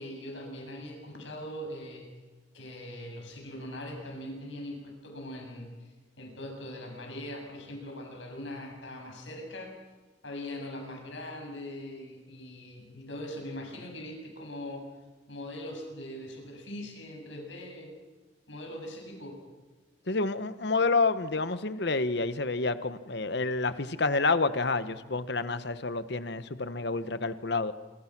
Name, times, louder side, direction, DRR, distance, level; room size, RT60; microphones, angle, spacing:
voice 1, 0.0-2.1 2.5-5.9 6.2-9.7 10.2-14.9 15.3-17.9 18.5-19.4, left 1 dB, 75° left, 2 dB, 7.4 m, -41 dB
voice 2, 20.1-27.7, left 3 dB, 60° left, 12 dB, 1.2 m, -29 dB
27.0 x 24.5 x 6.1 m, 1.3 s
head